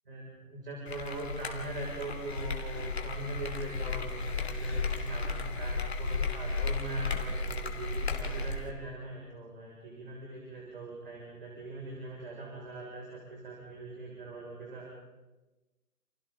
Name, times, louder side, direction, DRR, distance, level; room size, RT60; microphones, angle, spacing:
voice 1, 0.1-14.9, right 2 dB, 35° right, -2 dB, 6.6 m, -41 dB
sound 1, 0.9-8.7, left 3 dB, 40° left, 2.9 m, -34 dB
29.5 x 29.5 x 4.0 m, 1.1 s
figure-of-eight pair, 170°, 47 cm